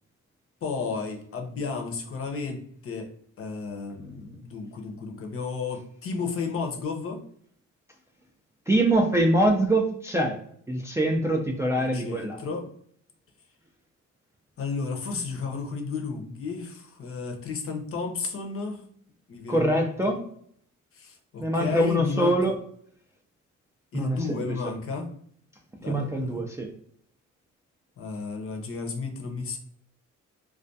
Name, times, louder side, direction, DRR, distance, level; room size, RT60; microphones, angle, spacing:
voice 1, 0.6-3.1 3.4-7.2 11.7-12.7 14.6-18.8 19.3-19.7 20.9-22.5 23.9-25.1 25.8-26.4 28.0-29.6, left 4 dB, 50° left, 4 dB, 0.6 m, -33 dB
voice 2, 8.7-10.4 10.7-12.4 19.5-20.2 21.4-22.5 23.9-24.4 25.9-26.7, right 1 dB, 10° right, 0 dB, 0.3 m, -24 dB
2.3 x 2.2 x 2.6 m, 0.64 s
cardioid pair, 90°, 30 cm